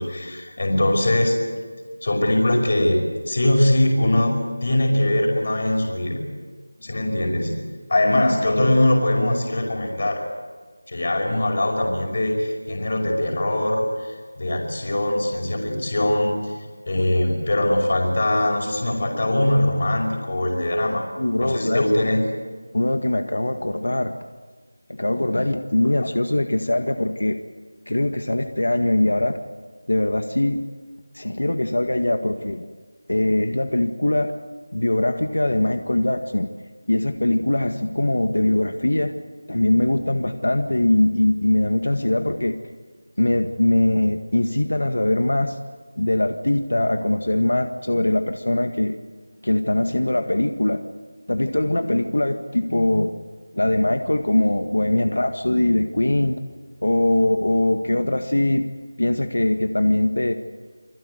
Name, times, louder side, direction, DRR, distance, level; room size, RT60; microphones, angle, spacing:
voice 1, 0.0-1.4 2.0-6.2 6.8-7.6 7.9-10.3 10.9-21.0 21.4-22.3, left 1 dB, 45° left, 2 dB, 5.5 m, -21 dB
voice 2, 21.2-21.8 22.7-24.2 24.9-27.4 27.9-29.4 29.9-30.6 31.1-32.7 33.1-34.3 34.7-36.5 36.9-39.1 39.5-42.6 43.2-45.6 46.0-49.0 49.4-50.9 51.3-53.2 53.5-56.4 56.8-58.7 59.0-60.3, left 1 dB, 80° left, 7 dB, 1.8 m, -21 dB
28.5 x 20.5 x 8.1 m, 1.5 s
figure-of-eight pair, 175°, 0 cm